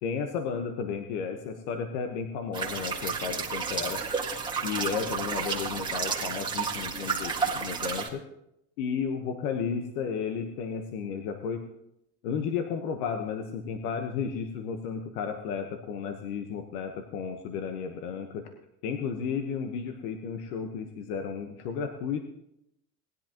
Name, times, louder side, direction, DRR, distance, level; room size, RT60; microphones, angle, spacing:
voice 1, 0.0-4.0 4.6-8.2 8.8-11.7 12.2-18.5 18.8-22.3, left 6 dB, 80° left, 5 dB, 1.3 m, -33 dB
sound 1, 2.5-8.1, right 5 dB, 10° right, 1.8 m, -31 dB
19.0 x 10.5 x 3.0 m, 0.80 s
supercardioid pair, 140°, 45 cm